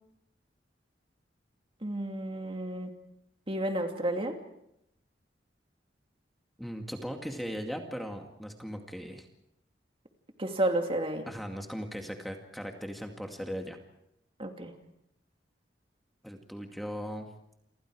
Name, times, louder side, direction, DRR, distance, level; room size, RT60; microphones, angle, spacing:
voice 1, 1.8-2.9 3.5-4.4 10.4-11.3 14.4-14.7, right 1 dB, 30° right, 4 dB, 2.6 m, -31 dB
voice 2, 6.6-9.3 11.3-13.8 16.2-17.3, equal, ahead, 3 dB, 2.2 m, -38 dB
28.5 x 26.0 x 4.8 m, 0.79 s
head